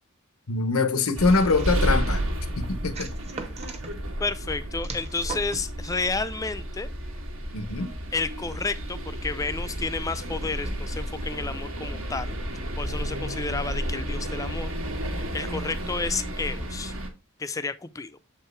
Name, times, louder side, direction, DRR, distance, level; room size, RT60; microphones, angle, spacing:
voice 1, 0.5-2.2 2.6-3.1 7.5-7.9, left 3 dB, 90° left, 0.9 m, -23 dB
sound 1, 1.1-17.1, equal, 70° right, 1.4 m, -31 dB
sound 2, 1.2-2.0 2.9-3.9 4.8-5.7, right 4 dB, 30° right, 0.9 m, -39 dB
voice 2, 4.2-6.9 8.1-12.4 12.8-14.7 15.3-16.9 17.4-18.2, left 4 dB, 15° left, 0.4 m, -31 dB
7.1 x 4.7 x 3.2 m
head